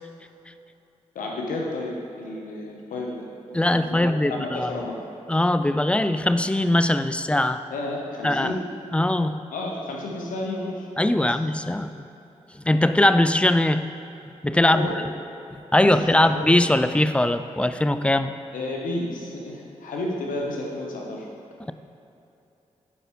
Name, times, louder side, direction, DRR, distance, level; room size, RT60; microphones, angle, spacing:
voice 1, 1.1-5.0 7.7-8.7 9.5-11.4 14.5-15.0 15.8-16.6 18.5-21.3, left 2 dB, 90° left, -1 dB, 1.0 m, -32 dB
voice 2, 3.5-4.7 5.3-7.6 8.2-8.6 8.9-9.4 11.0-12.1 12.6-13.9 14.4-14.9 15.5-18.3, left 1 dB, 10° left, 11 dB, 0.3 m, -21 dB
11.0 x 4.8 x 3.1 m, 2.9 s
supercardioid pair, 45°, 14 cm